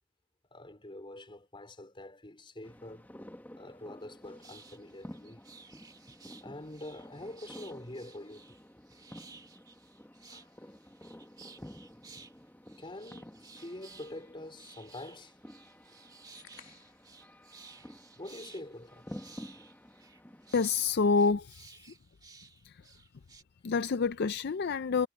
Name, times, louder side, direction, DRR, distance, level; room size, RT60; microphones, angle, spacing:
voice 1, 0.5-3.1 3.6-5.4 6.4-8.6 10.3-10.5 12.8-15.4 16.0-16.2 18.2-19.1, left 1 dB, 25° left, 4.5 m, -46 dB
sound 1, 2.6-21.0, equal, 10° left, 1.3 m, -51 dB
sound 2, 4.0-4.1 4.4-12.3 12.7-23.4, right 4 dB, 20° right, 1.6 m, -56 dB
sound 3, 16.3-17.2, left 8 dB, 65° left, 2.3 m, -56 dB
voice 2, 20.5-21.7 22.7-22.8 23.6-25.1, left 4 dB, 50° left, 0.5 m, -27 dB
head